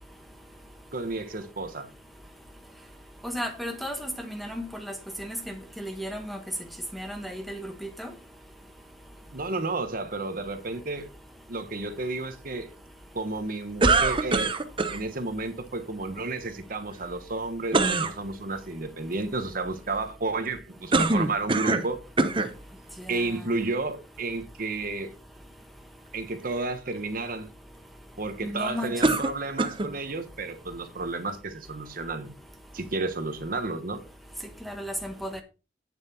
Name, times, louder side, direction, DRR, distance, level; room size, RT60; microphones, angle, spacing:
voice 1, 0.9-1.9 9.3-11.1 11.5-12.7 13.1-14.5 14.9-22.0 23.1-25.1 26.1-27.5 28.2-32.3 32.7-34.0, right 3 dB, 50° right, 1.3 m, -32 dB
voice 2, 3.2-4.9 5.2-6.4 6.9-7.7 8.0-8.1 23.1-23.3 28.4-28.9 34.6-35.4, equal, ahead, 1.3 m, -34 dB
sound 1, 13.8-15.0 17.7-18.1 20.9-21.9 22.2-22.5 23.3-23.4 29.0-29.9, right 3 dB, 25° right, 0.8 m, -23 dB
9.1 x 7.3 x 4.3 m
head